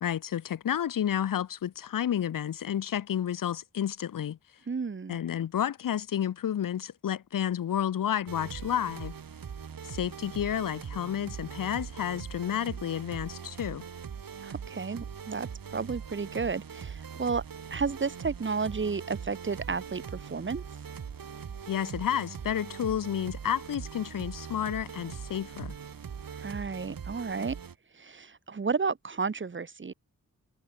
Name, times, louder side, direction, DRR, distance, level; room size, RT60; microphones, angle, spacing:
voice 1, 0.0-4.4 5.1-9.1 9.8-13.8 21.7-25.7, left 10 dB, 75° left, 0.7 m, -31 dB
voice 2, 4.7-5.2 14.4-17.4 17.7-20.6 26.3-27.6 27.9-29.9, right 5 dB, 35° right, 1.3 m, -32 dB
sound 1, 8.3-27.7, right 7 dB, 85° right, 3.8 m, -41 dB
wide cardioid pair, 180°, 34 cm